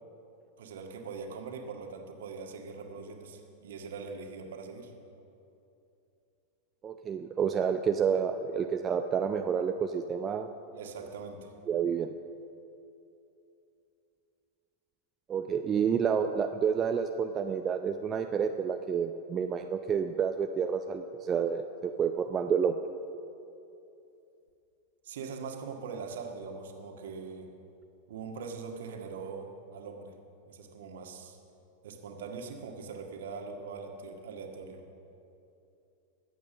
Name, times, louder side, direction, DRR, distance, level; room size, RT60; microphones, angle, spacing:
voice 1, 0.6-4.9 10.7-11.5 25.0-27.5 28.1-30.2 30.5-31.4 31.8-34.8, right 5 dB, 60° right, 3 dB, 1.7 m, -42 dB
voice 2, 6.8-10.5 11.7-12.1 15.3-22.7, right 7 dB, 25° right, 6 dB, 0.6 m, -29 dB
21.0 x 8.3 x 6.3 m, 2.7 s
figure-of-eight pair, 90°, 0 cm